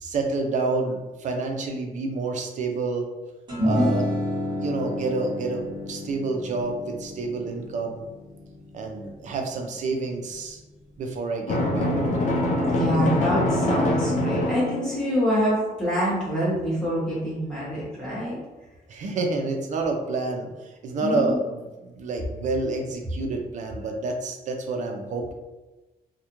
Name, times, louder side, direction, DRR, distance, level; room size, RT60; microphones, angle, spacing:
voice 1, 0.0-3.1 3.6-4.1 4.6-8.0 8.7-10.6 11.0-12.5 12.9-13.2 18.9-25.3, right 3 dB, 50° right, 2 dB, 0.4 m, -29 dB
sound 1, 3.5-10.0, left 1 dB, 30° right, 1.0 m, -29 dB
Drum, 11.5-15.3, left 1 dB, 50° left, 0.5 m, -24 dB
voice 2, 12.6-18.4 21.0-21.4, equal, 5° left, -9 dB, 1.1 m, -26 dB
2.4 x 2.1 x 2.9 m, 1.1 s
wide cardioid pair, 155°, 16 cm